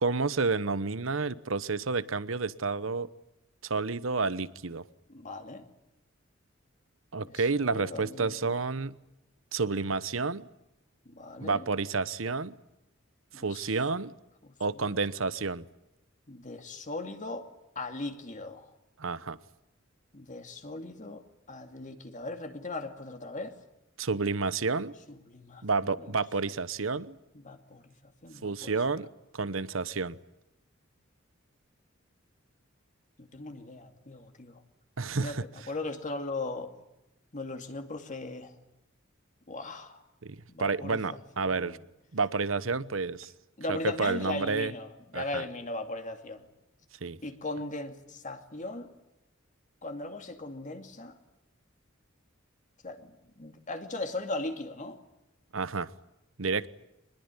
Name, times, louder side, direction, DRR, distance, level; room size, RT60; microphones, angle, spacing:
voice 1, 0.0-3.1 3.6-4.8 7.1-9.0 9.5-10.5 11.4-12.6 13.3-14.1 14.6-15.6 19.0-19.4 24.0-24.9 25.6-27.2 28.4-30.2 35.0-35.7 40.2-41.8 42.1-43.3 43.7-44.7 45.1-45.4 47.0-47.2 55.5-55.9 56.4-56.7, right 4 dB, 90° right, 16 dB, 1.0 m, -30 dB
voice 2, 5.1-5.6 7.2-7.3 7.6-8.3 11.1-11.6 13.3-13.7 14.8-14.9 16.3-17.5 17.8-18.6 20.1-21.2 21.5-23.5 25.1-25.6 27.3-27.8 28.2-28.7 33.2-34.6 35.2-35.4 35.7-36.7 37.3-38.5 39.5-40.0 40.5-41.2 41.5-41.8 43.6-44.9 45.1-46.4 47.2-48.9 49.8-51.1 52.8-53.0 53.4-55.0, left 2 dB, 40° left, 6 dB, 2.4 m, -38 dB
24.0 x 21.0 x 9.8 m, 0.90 s
head